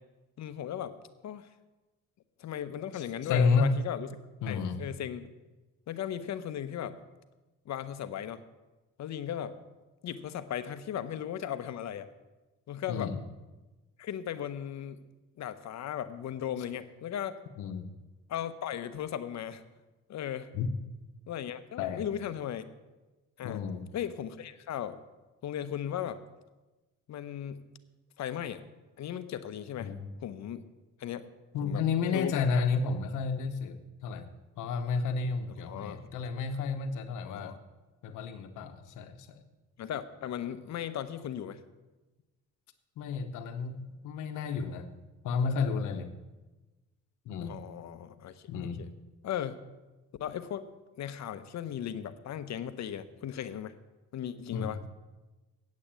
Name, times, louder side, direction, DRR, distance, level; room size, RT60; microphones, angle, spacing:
voice 1, 0.4-1.0 1.2-1.5 2.4-4.1 4.5-5.3 5.9-7.0 7.7-8.4 9.0-9.6 10.0-12.1 12.7-13.1 14.0-15.0 15.4-17.4 18.3-19.6 20.1-20.5 21.3-22.6 23.4-23.6 23.9-25.0 25.4-26.2 27.1-27.6 28.2-28.6 29.0-29.9 30.2-30.6 31.0-31.3 31.6-32.7 35.6-36.1 37.2-37.6 39.8-41.6 47.5-48.5 48.8-48.9 49.2-49.6 50.2-50.7 51.0-53.7 54.1-54.9, left 10 dB, 65° left, 12 dB, 0.8 m, -37 dB
voice 2, 2.9-3.7 4.4-4.8 12.9-13.2 17.6-17.9 20.5-20.7 21.8-22.0 23.4-23.8 29.8-30.0 31.5-34.3 34.6-37.6 38.0-39.4 43.0-44.9 45.2-46.1 47.3-47.5 48.5-48.8 54.5-54.7, left 5 dB, 90° left, 9 dB, 1.0 m, -31 dB
8.6 x 8.3 x 7.4 m, 1.1 s
cardioid pair, 90°, 30 cm